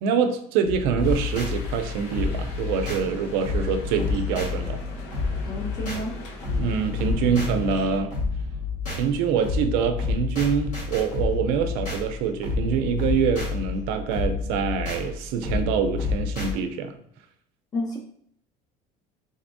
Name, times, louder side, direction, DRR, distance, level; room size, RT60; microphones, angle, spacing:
voice 1, 0.0-4.8 6.6-8.1 8.9-17.0, right 6 dB, 80° right, 7 dB, 0.5 m, -25 dB
sound 1, 0.6-16.5, left 4 dB, 50° left, 1.4 m, -29 dB
sound 2, 1.0-8.0, left 3 dB, 90° left, 0.9 m, -41 dB
voice 2, 5.5-6.1 17.7-18.0, left 1 dB, 25° left, 1 dB, 0.5 m, -30 dB
3.8 x 3.4 x 2.6 m, 0.67 s
cardioid pair, 170°, 16 cm